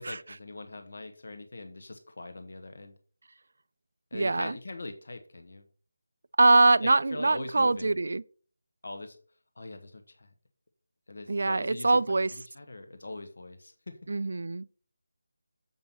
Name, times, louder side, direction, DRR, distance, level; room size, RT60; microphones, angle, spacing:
voice 1, 0.0-2.9 4.1-5.6 6.8-8.0 8.8-9.2 9.6-10.3 11.1-12.0 12.3-13.9, left 2 dB, 60° left, 1.4 m, -42 dB
voice 2, 4.1-4.6 6.4-8.2 11.3-12.3 14.1-14.7, right 3 dB, 60° right, 0.4 m, -23 dB
7.5 x 5.5 x 5.7 m
figure-of-eight pair, 175°, 0 cm